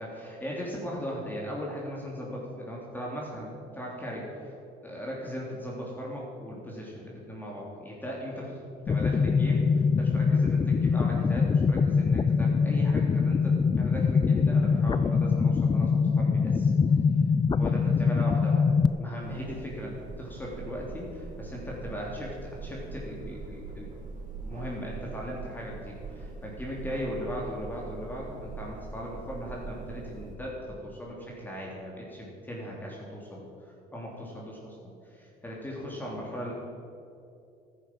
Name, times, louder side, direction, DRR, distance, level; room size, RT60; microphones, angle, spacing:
voice 1, 0.0-4.5 4.8-8.6 8.8-16.9 17.5-23.9 24.4-36.5, equal, 10° left, -4 dB, 3.2 m, -38 dB
sound 1, 8.9-18.9, left 5 dB, 25° left, 0.5 m, -23 dB
sound 2, 19.2-30.4, right 4 dB, 50° right, 2.8 m, -42 dB
14.0 x 10.5 x 7.7 m, 2.6 s
cardioid pair, 110°, 17 cm